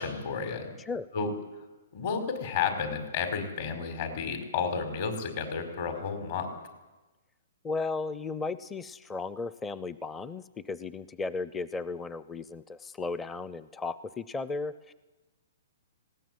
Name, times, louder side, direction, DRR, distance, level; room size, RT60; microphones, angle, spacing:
voice 1, 0.0-0.7 1.1-1.3 1.9-6.5, left 6 dB, 50° left, 7 dB, 5.2 m, -32 dB
voice 2, 7.6-14.9, left 3 dB, 10° left, 15 dB, 0.6 m, -35 dB
20.0 x 18.0 x 9.7 m, 1.1 s
hypercardioid pair, 150°, 0 cm